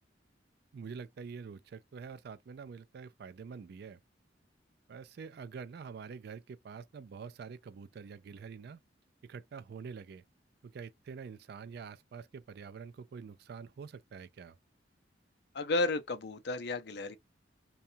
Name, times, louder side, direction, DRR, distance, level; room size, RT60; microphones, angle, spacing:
voice 1, 0.7-4.0 4.9-8.8 9.2-10.2 10.6-14.6, right 5 dB, 60° right, 0.3 m, -46 dB
voice 2, 15.5-17.2, left 2 dB, 60° left, 0.5 m, -32 dB
2.7 x 2.3 x 2.6 m
head